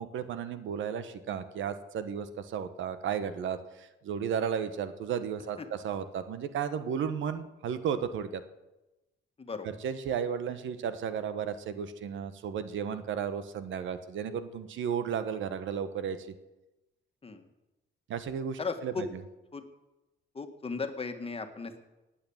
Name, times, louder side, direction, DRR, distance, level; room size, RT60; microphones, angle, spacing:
voice 1, 0.0-8.4 9.6-16.3 18.1-19.2, right 7 dB, 75° right, 11 dB, 1.1 m, -34 dB
voice 2, 18.6-19.1 19.5-19.6 20.4-21.8, left 4 dB, 30° left, 7 dB, 1.7 m, -36 dB
18.5 x 8.8 x 7.2 m, 1.0 s
cardioid pair, 90°, 20 cm